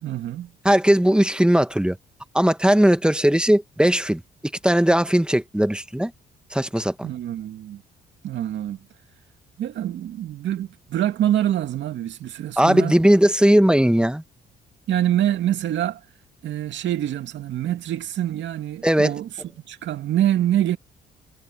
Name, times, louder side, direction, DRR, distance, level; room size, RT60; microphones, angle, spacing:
voice 1, 0.0-0.5 7.0-7.8 8.2-8.8 9.6-13.0 14.9-16.0 16.4-19.3 19.7-20.8, right 11 dB, 70° right, 2.5 m, -25 dB
voice 2, 0.6-2.0 2.3-4.2 4.6-6.1 6.5-7.1 12.6-14.2 18.8-19.1, equal, 5° right, 1.7 m, -18 dB
supercardioid pair, 65°, 19 cm